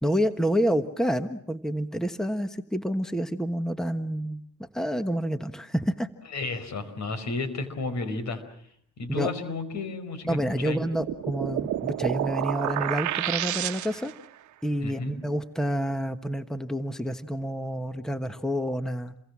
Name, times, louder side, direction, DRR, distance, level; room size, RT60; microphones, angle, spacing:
voice 1, 0.0-4.4 4.7-6.1 9.1-9.3 10.3-14.1 14.6-19.1, equal, ahead, 10 dB, 1.3 m, -28 dB
voice 2, 6.3-8.4 9.0-10.8 14.8-15.2, left 3 dB, 65° left, 12 dB, 5.0 m, -32 dB
sound 1, 10.6-14.2, right 13 dB, 75° right, 1.1 m, -30 dB
29.0 x 23.0 x 7.5 m, 0.64 s
cardioid pair, 90°, 30 cm